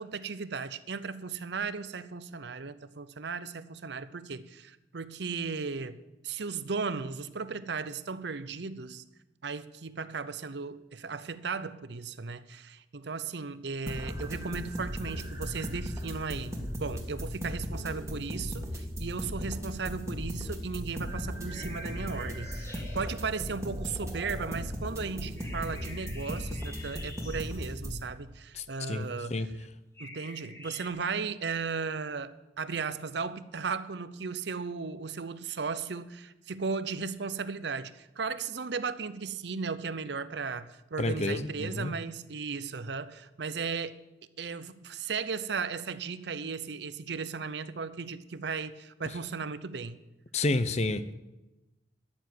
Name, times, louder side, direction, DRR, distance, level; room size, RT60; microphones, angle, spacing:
voice 1, 0.0-9.0 9.4-29.4 30.0-44.0 44.4-50.0, right 5 dB, 65° right, 0.6 m, -36 dB
sound 1, 13.9-28.0, equal, 15° right, 1.7 m, -37 dB
sound 2, 21.5-23.2 25.4-27.7 29.9-30.9, left 1 dB, 15° left, 1.9 m, -48 dB
voice 2, 28.5-29.5 41.0-41.9 50.3-51.1, left 2 dB, 35° left, 0.6 m, -30 dB
12.5 x 7.1 x 9.4 m
head